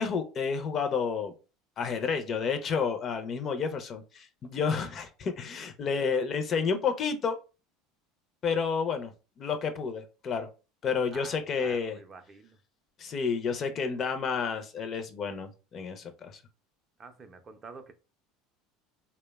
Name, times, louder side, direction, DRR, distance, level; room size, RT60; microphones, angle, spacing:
voice 1, 0.0-1.3 1.8-7.4 8.4-9.1 9.4-10.5 10.8-12.0 13.0-16.4, left 5 dB, 40° left, 0.4 m, -30 dB
voice 2, 11.1-12.6 17.0-17.9, right 4 dB, 30° right, 0.4 m, -48 dB
2.7 x 2.1 x 2.2 m
supercardioid pair, 95°, 0 cm